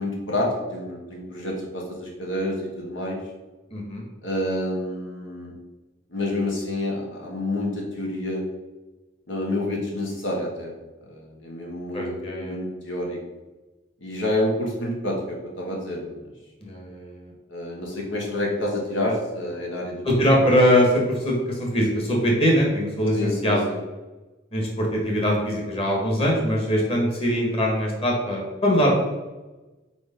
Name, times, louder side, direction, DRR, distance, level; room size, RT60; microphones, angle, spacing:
voice 1, 0.0-3.2 4.2-5.5 6.1-8.5 9.3-10.7 11.0-13.2 14.0-16.1 17.5-20.0 23.1-23.8, left 1 dB, 75° left, -1 dB, 1.3 m, -28 dB
voice 2, 3.7-4.0 11.9-12.5 16.6-17.3 20.0-23.6 24.5-28.9, equal, 30° left, -2 dB, 1.7 m, -22 dB
5.2 x 4.7 x 5.3 m, 1.1 s
head